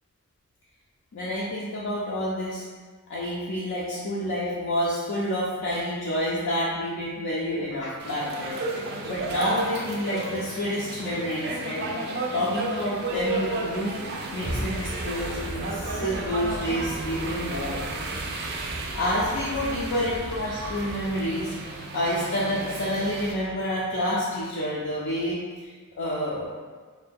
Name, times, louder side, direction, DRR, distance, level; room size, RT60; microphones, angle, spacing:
voice 1, 1.1-2.6 3.1-11.9 12.3-14.0 14.3-17.9 18.9-21.5 21.9-26.5, equal, 55° left, -8 dB, 0.5 m, -29 dB
sound 1, 8.0-23.3, right 3 dB, 50° right, 0.4 m, -33 dB
Fire, 13.0-21.8, equal, 90° left, 1.1 m, -38 dB
2.6 x 2.1 x 3.5 m, 1.5 s
head